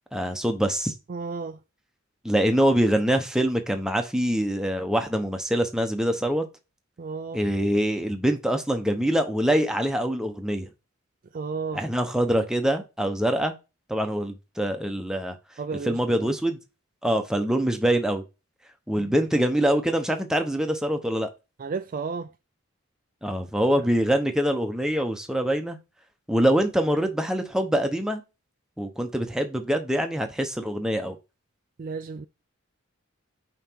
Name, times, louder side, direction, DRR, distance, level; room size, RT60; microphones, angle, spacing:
voice 1, 0.1-0.9 2.2-6.4 7.3-10.7 11.7-13.5 13.9-15.4 15.8-16.6 17.0-18.2 18.9-21.3 23.2-25.8 26.3-28.2 28.8-31.2, equal, 5° right, 0.8 m, -24 dB
voice 2, 1.1-1.6 7.0-7.4 11.3-11.8 15.6-16.3 19.0-19.1 21.6-22.3 31.8-32.3, right 5 dB, 40° right, 0.3 m, -33 dB
5.7 x 3.9 x 4.5 m
head